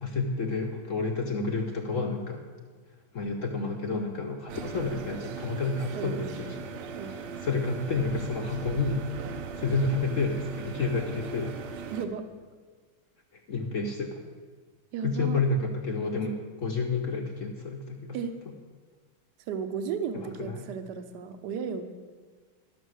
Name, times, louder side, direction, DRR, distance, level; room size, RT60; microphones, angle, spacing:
voice 1, 0.0-2.4 3.1-6.7 7.0-9.0 9.5-11.6 13.3-14.2 15.0-18.2 20.1-20.7, left 3 dB, 60° left, 2 dB, 0.8 m, -30 dB
sound 1, 4.5-12.1, right 5 dB, 80° right, 1.7 m, -39 dB
voice 2, 5.9-6.4 6.9-7.2 11.9-12.3 14.9-15.4 18.1-18.3 19.5-21.8, right 6 dB, 65° right, 8 dB, 1.3 m, -34 dB
12.0 x 6.9 x 6.4 m, 1.5 s
omnidirectional pair, 2.3 m